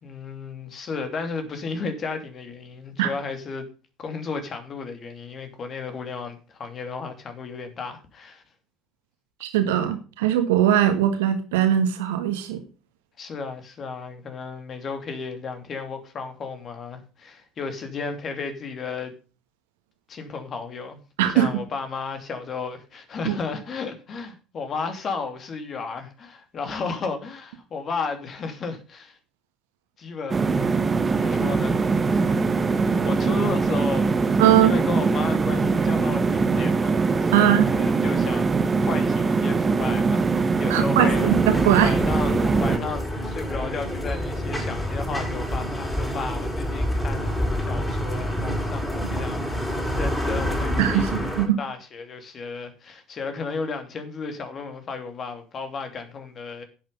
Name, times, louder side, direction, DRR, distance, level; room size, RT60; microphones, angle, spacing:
voice 1, 0.0-3.7 4.0-8.4 13.2-19.1 20.1-29.2 30.0-30.5 30.8-32.4 32.7-34.1 34.6-41.3 41.7-56.6, left 4 dB, 40° left, 2.9 m, -34 dB
voice 2, 9.4-12.6 21.2-21.5 23.2-23.3 34.4-34.7 37.3-37.7 40.7-42.0 50.8-51.6, right 11 dB, 70° right, 1.5 m, -20 dB
sound 1, 30.3-42.8, right 4 dB, 25° right, 1.0 m, -22 dB
sound 2, 41.1-51.5, equal, 10° left, 5.7 m, -27 dB
10.5 x 8.7 x 5.4 m
figure-of-eight pair, 60°, 0 cm